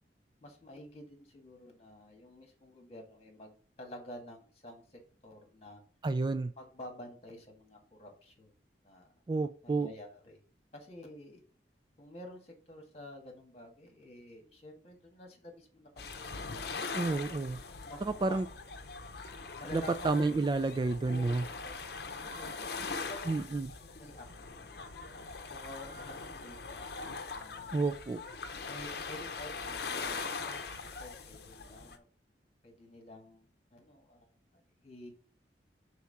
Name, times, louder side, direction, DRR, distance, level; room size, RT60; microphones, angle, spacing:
voice 1, 0.4-5.8 6.6-8.5 8.8-9.1 9.6-10.4 10.7-11.4 12.0-15.9 16.2-16.7 17.8-18.4 19.6-20.1 21.0-21.8 22.2-24.6 25.5-26.8 27.3-27.7 28.7-32.1 32.6-34.3 34.8-35.1, left 1 dB, 35° left, 2 dB, 1.8 m, -50 dB
voice 2, 6.0-6.5 9.3-9.9 17.0-17.6 18.0-18.5 19.7-21.4 23.3-23.7 27.7-28.2, right 3 dB, 25° right, 11 dB, 0.3 m, -30 dB
sound 1, 16.0-32.0, left 4 dB, 60° left, 0.8 m, -41 dB
4.7 x 4.2 x 5.8 m, 0.41 s
head